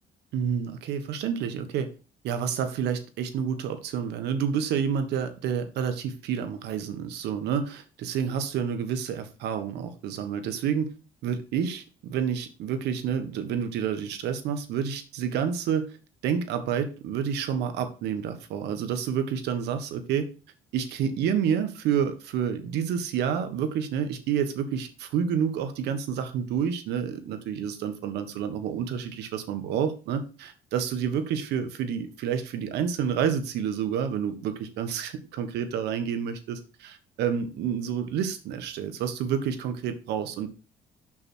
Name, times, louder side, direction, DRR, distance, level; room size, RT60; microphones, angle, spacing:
voice 1, 0.3-1.9 2.2-10.9 11.2-15.9 16.2-20.3 20.7-40.5, right 8 dB, 80° right, 9 dB, 1.3 m, -29 dB
6.3 x 6.2 x 4.4 m, 0.34 s
cardioid pair, 110°, 17 cm